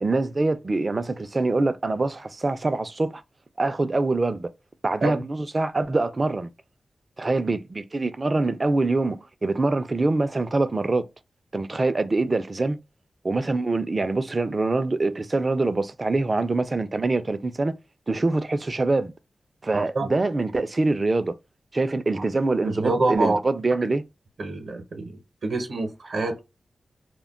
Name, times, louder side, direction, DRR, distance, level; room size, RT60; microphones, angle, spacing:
voice 1, 0.0-3.2 3.6-4.5 4.8-6.5 7.2-11.0 11.5-12.8 13.2-17.8 18.1-19.1 19.6-21.4 21.7-24.0, right 2 dB, 35° right, 0.4 m, -24 dB
voice 2, 19.7-20.1 22.1-22.2 22.6-23.4 24.4-26.4, right 2 dB, 70° right, 0.7 m, -26 dB
2.2 x 2.1 x 3.6 m
wide cardioid pair, 100°, 0 cm